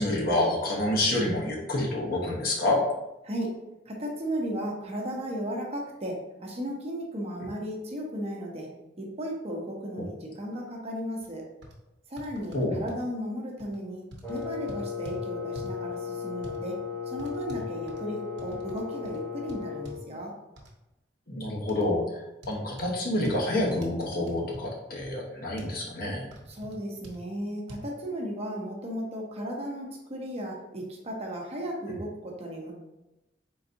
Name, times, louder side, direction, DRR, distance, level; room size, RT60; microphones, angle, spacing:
voice 1, 0.0-2.8 10.0-10.1 12.5-12.9 21.3-26.3 31.9-32.0, left 1 dB, 55° left, -1 dB, 0.9 m, -28 dB
voice 2, 3.9-8.7 9.0-11.4 12.1-14.0 14.3-16.8 17.1-20.3 26.5-32.7, equal, 35° right, -1 dB, 0.8 m, -35 dB
sound 1, 11.2-11.3 11.6-11.7 12.2-13.0 13.6-13.8 14.1-15.2 15.5-15.8 16.4-16.6 17.2-18.8 19.0-19.2 19.5-20.0 20.6-20.7 21.7-21.8 22.4-22.9 23.2-24.7 25.0-25.1 25.6-25.7 26.3-26.7 27.0-27.2 27.7-27.8, equal, 70° right, 0.8 m, -45 dB
Wind instrument woodwind instrument, 14.2-20.0, left 6 dB, 10° left, 1.0 m, -36 dB
4.0 x 3.9 x 2.6 m, 0.95 s
head